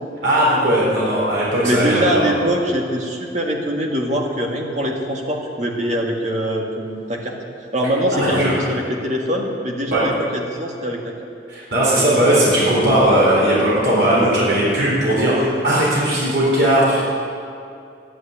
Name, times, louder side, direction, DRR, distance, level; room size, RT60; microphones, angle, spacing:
voice 1, 0.2-2.3 8.1-8.6 9.9-10.0 11.5-17.0, right 1 dB, 65° right, -7 dB, 4.3 m, -17 dB
voice 2, 1.6-7.4 7.7-11.1 14.1-14.3, equal, 40° right, 0 dB, 1.9 m, -23 dB
11.0 x 11.0 x 8.8 m, 2.4 s
head